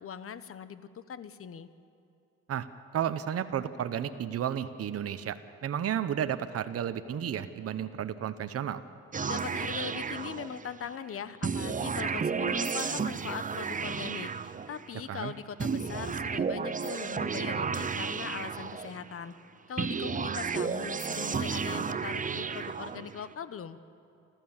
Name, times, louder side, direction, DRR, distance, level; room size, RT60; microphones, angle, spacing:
voice 1, 0.0-1.7 9.2-19.3 19.7-23.8, left 7 dB, 50° left, 13 dB, 1.0 m, -40 dB
voice 2, 2.9-5.4 5.6-8.8 15.1-15.3, right 9 dB, 50° right, 10 dB, 0.9 m, -32 dB
sound 1, 9.1-10.9 11.4-15.0 15.6-19.2 19.8-23.3, right 5 dB, 25° right, 0.7 m, -33 dB
28.0 x 13.0 x 7.3 m, 2.8 s
cardioid pair, 90°, 30 cm